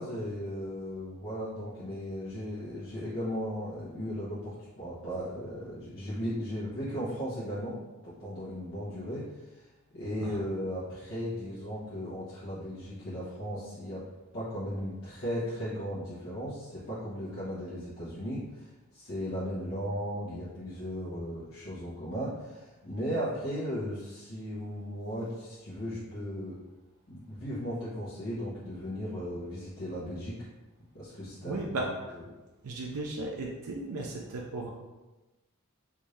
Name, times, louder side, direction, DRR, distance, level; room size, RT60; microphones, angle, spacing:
voice 1, 0.0-7.7 8.0-9.3 9.5-9.6 9.9-14.0 14.3-26.5 27.1-30.4 30.9-31.9, equal, 60° left, -11 dB, 1.1 m, -36 dB
voice 2, 31.5-32.2 32.6-34.7, right 2 dB, 85° right, -1 dB, 0.4 m, -35 dB
3.5 x 2.6 x 3.2 m, 1.1 s
head